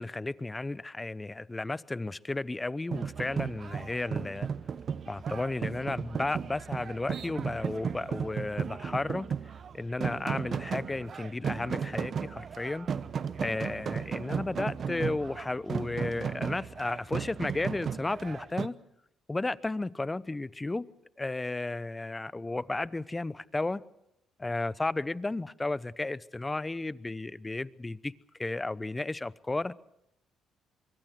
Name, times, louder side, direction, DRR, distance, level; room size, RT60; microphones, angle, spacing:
voice 1, 0.0-4.5 5.1-9.3 9.7-12.9 13.4-18.8 19.3-20.9 21.2-23.8 24.4-28.1 28.4-29.7, left 2 dB, 20° left, 20 dB, 0.8 m, -33 dB
sound 1, 2.9-18.7, right 7 dB, 50° right, 1.0 m, -35 dB
25.0 x 23.5 x 6.1 m, 0.82 s
hypercardioid pair, 50°, 0 cm